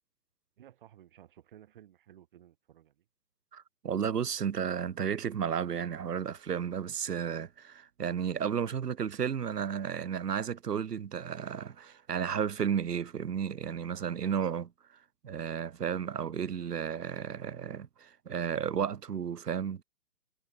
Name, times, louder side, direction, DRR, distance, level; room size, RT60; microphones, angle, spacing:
voice 1, 0.6-3.0, right 11 dB, 35° right, 1.1 m, -56 dB
voice 2, 3.5-14.7 15.2-19.8, right 8 dB, 90° right, 0.7 m, -33 dB
figure-of-eight pair, 135°, 46 cm